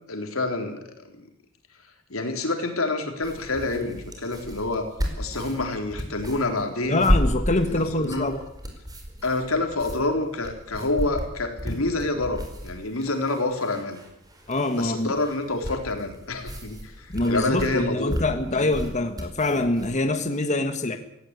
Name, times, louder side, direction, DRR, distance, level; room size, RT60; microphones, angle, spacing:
voice 1, 0.1-0.8 1.1-1.2 2.1-4.9 5.2-7.1 7.7-8.3 9.2-14.0 14.7-18.2 18.5-18.7, left 2 dB, 90° left, 5 dB, 3.9 m, -27 dB
sound 1, 3.2-20.0, equal, 20° right, 4.7 m, -32 dB
voice 2, 6.8-8.4 14.5-15.1 17.1-21.0, left 2 dB, 35° left, 7 dB, 1.5 m, -25 dB
17.5 x 16.5 x 9.7 m, 0.77 s
head